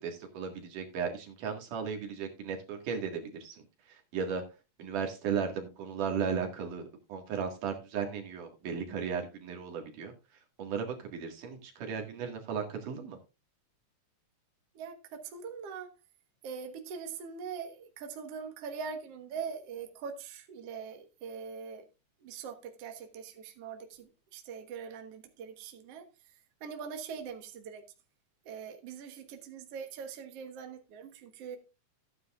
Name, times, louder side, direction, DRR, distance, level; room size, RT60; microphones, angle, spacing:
voice 1, 0.0-4.4 4.8-10.1 10.6-13.2, right 6 dB, 75° right, 3.4 m, -36 dB
voice 2, 14.7-15.9 16.4-21.9 22.2-27.9 28.4-31.6, right 6 dB, 55° right, 2.1 m, -42 dB
14.5 x 9.5 x 2.4 m
omnidirectional pair, 3.7 m